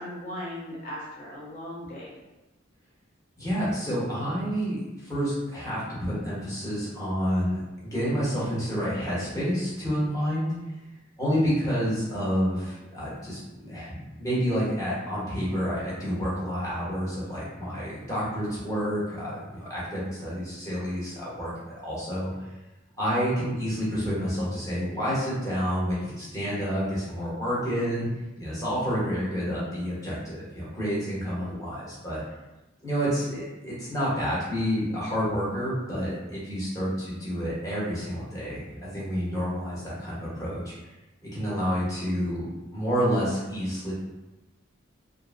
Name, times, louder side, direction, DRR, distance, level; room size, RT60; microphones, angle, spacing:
voice 1, 0.0-2.1, left 1 dB, 40° left, -6 dB, 0.6 m, -37 dB
voice 2, 3.4-10.5 11.2-21.5 21.8-22.3 23.0-28.0 28.4-32.2 32.8-40.7 41.3-43.9, equal, 15° left, -8 dB, 0.9 m, -29 dB
2.6 x 2.5 x 2.4 m, 1.0 s
head